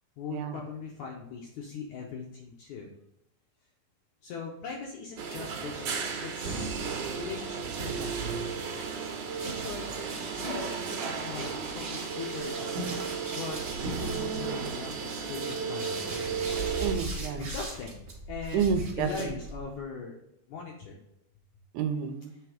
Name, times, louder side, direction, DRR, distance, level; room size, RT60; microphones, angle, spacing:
voice 1, 0.2-2.9 4.2-6.9 7.2-8.1 9.4-9.9 10.3-13.0 13.3-16.5 17.4-18.7 19.0-20.2 20.5-21.0, left 5 dB, 75° left, -1 dB, 1.8 m, -40 dB
sound 1, 5.2-17.0, right 5 dB, 65° right, 2.0 m, -34 dB
sound 2, 9.4-19.8, right 2 dB, 50° right, 1.1 m, -41 dB
voice 2, 16.8-17.4 18.5-19.3 21.7-22.3, right 6 dB, 80° right, 6 dB, 2.4 m, -29 dB
8.1 x 3.4 x 5.0 m, 0.80 s
omnidirectional pair, 4.4 m